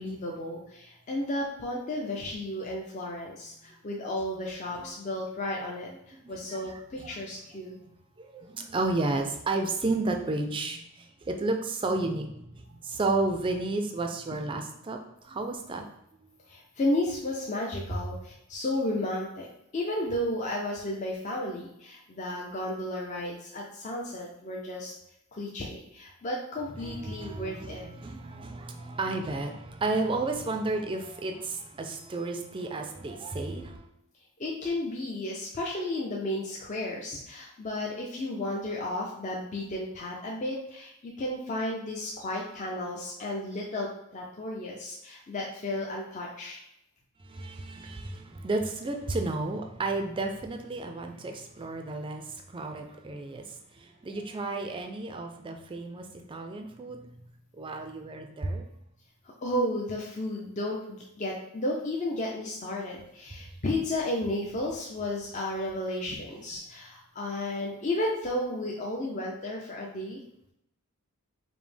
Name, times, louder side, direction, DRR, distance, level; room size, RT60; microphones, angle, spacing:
voice 1, 0.0-7.8 16.5-19.5 19.7-24.9 25.3-27.8 34.4-46.6 59.2-70.2, left 1 dB, 35° left, -2 dB, 0.5 m, -33 dB
voice 2, 6.2-6.6 7.0-7.2 8.3-10.8 11.3-12.3 12.7-15.0 15.3-15.8 26.8-33.8 47.3-52.2 52.5-53.4 54.0-56.0 56.3-57.0 57.6-58.6, right 2 dB, 25° right, 4 dB, 0.4 m, -32 dB
5.0 x 2.0 x 3.3 m, 0.80 s
head